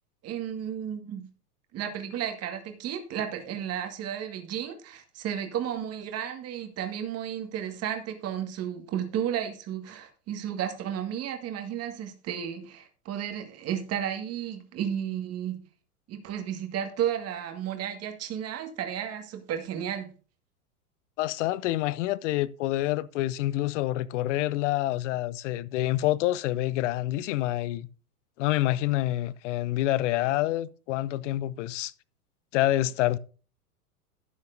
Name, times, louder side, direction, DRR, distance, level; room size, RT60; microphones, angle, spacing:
voice 1, 0.2-1.3 1.7-15.6 16.1-20.1, right 9 dB, 30° right, 1.8 m, -33 dB
voice 2, 21.2-27.9 28.4-31.9 32.5-33.2, left 15 dB, 50° left, 0.7 m, -27 dB
12.5 x 9.2 x 2.6 m
hypercardioid pair, 100°, 45 cm